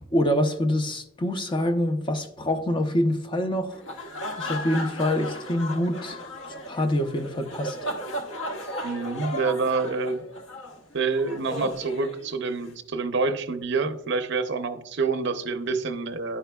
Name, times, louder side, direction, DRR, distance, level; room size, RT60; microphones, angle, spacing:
voice 1, 0.1-3.8 4.4-7.8, left 1 dB, 25° left, 0.5 m, -26 dB
sound 1, 3.7-12.7, equal, 65° left, 0.8 m, -36 dB
voice 2, 8.8-10.2 10.9-16.4, right 4 dB, 55° right, 0.6 m, -27 dB
11.0 x 5.0 x 2.2 m
head